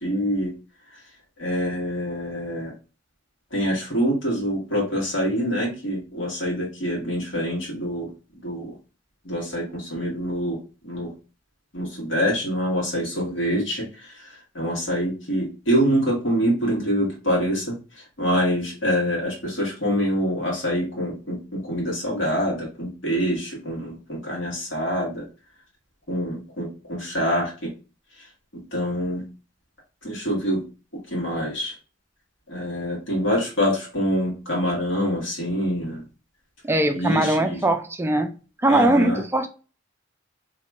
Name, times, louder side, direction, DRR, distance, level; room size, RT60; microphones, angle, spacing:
voice 1, 0.0-0.5 1.4-2.7 3.5-8.1 8.4-8.7 9.2-10.6 10.8-11.1 11.7-17.7 18.2-25.2 26.1-27.7 28.5-29.2 30.0-30.6 31.1-31.7 32.5-36.0 36.9-37.6 38.7-39.2, equal, 75° left, -3 dB, 1.5 m, -25 dB
voice 2, 36.6-38.3 38.6-39.5, right 1 dB, 10° right, 6 dB, 0.4 m, -21 dB
2.9 x 2.3 x 4.1 m, 0.34 s
head